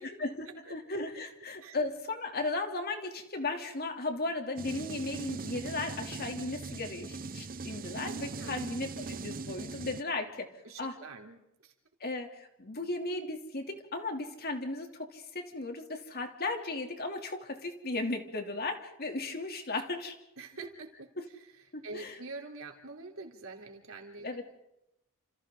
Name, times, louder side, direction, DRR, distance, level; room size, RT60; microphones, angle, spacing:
voice 1, 0.2-10.5 10.8-11.0 12.0-20.1 21.2-21.3 21.7-22.2 24.2-24.4, left 2 dB, 50° left, 4 dB, 3.0 m, -36 dB
sound 1, 4.6-10.0, right 4 dB, 40° right, 0.8 m, -40 dB
voice 2, 10.7-11.4 20.4-21.1 21.8-24.3, right 3 dB, 70° right, 2 dB, 3.7 m, -45 dB
30.0 x 28.0 x 3.9 m, 0.85 s
head